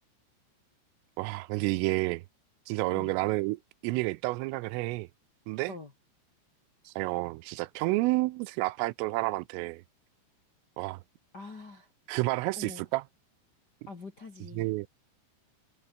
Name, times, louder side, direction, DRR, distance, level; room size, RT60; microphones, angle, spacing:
voice 1, 1.2-2.2 2.7-5.1 5.5-5.7 6.9-9.8 10.8-11.0 12.1-13.0 14.6-14.9, right 22 dB, 85° right, 3.3 m, -30 dB
voice 2, 11.3-11.9 12.6-12.8 13.9-14.7, left 3 dB, 40° left, 1.4 m, -44 dB
omnidirectional pair, 5.8 m